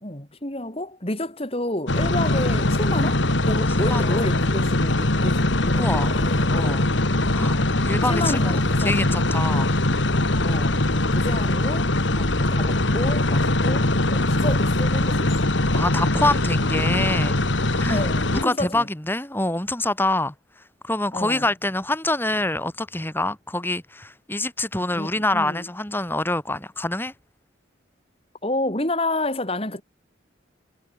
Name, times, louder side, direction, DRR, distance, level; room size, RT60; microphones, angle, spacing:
voice 1, 0.0-6.9 8.1-9.0 10.4-11.9 12.4-15.3 17.9-18.9 21.1-21.5 24.9-25.7 28.4-29.8, left 1 dB, 30° left, 3.8 m, -29 dB
sound 1, 1.9-18.4, left 2 dB, 75° left, 2.4 m, -21 dB
voice 2, 3.8-4.2 5.7-6.2 6.5-6.8 7.3-7.6 7.8-9.7 12.1-12.4 15.7-17.4 17.7-18.0 18.3-20.3 20.8-27.1, left 2 dB, 10° left, 4.6 m, -26 dB
head